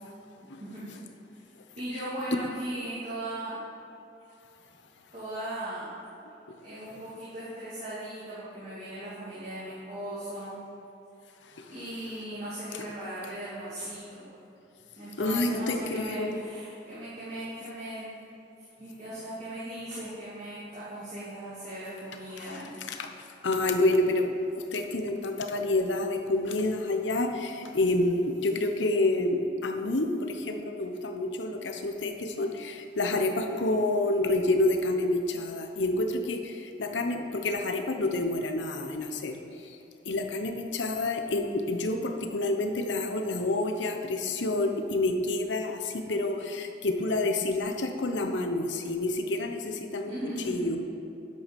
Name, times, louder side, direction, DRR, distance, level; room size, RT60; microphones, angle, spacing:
voice 1, 1.8-3.6 5.1-5.9 6.6-10.6 11.7-14.3 15.0-18.1 18.8-22.7 50.1-50.6, right 1 dB, 35° right, -11 dB, 2.6 m, -38 dB
voice 2, 15.2-16.4 22.4-23.1 23.4-39.8 40.0-50.1 50.4-50.8, left 2 dB, 80° left, 5 dB, 1.0 m, -28 dB
10.5 x 7.9 x 5.3 m, 2.8 s
head